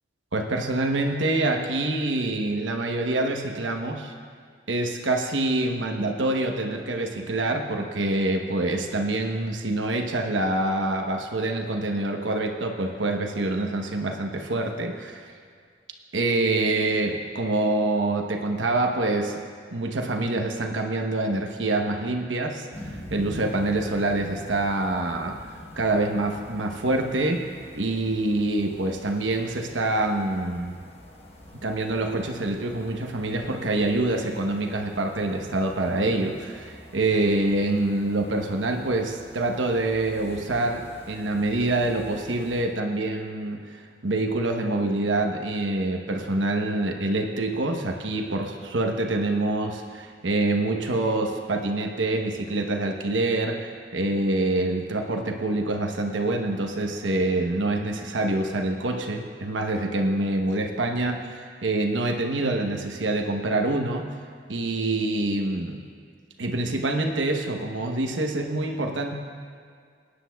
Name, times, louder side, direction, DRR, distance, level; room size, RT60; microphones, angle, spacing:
voice 1, 0.3-4.1 4.7-15.3 16.1-19.4 19.7-25.4 25.8-27.5 27.7-30.8 31.5-64.1 64.5-65.8 66.4-69.1, right 2 dB, 85° right, 2 dB, 1.0 m, -26 dB
sound 1, 22.7-42.7, left 1 dB, 35° left, 1.1 m, -46 dB
20.5 x 9.8 x 2.3 m, 2.1 s
head